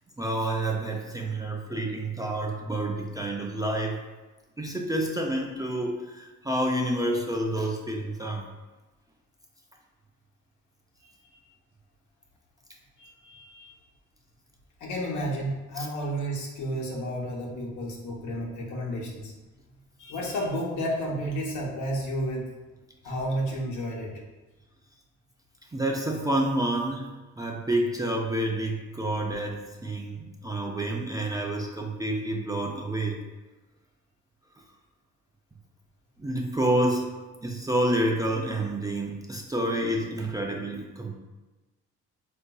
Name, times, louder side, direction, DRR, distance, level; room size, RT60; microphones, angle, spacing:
voice 1, 0.2-4.1 4.6-8.4 15.8-15.9 25.7-33.2 36.2-41.1, right 1 dB, 15° right, -1 dB, 0.3 m, -29 dB
voice 2, 11.0-11.4 13.0-13.7 14.8-19.3 20.0-22.5 23.0-24.1, equal, 75° left, -3 dB, 0.9 m, -32 dB
3.7 x 2.5 x 2.3 m, 1.2 s
cardioid pair, 90°, 30 cm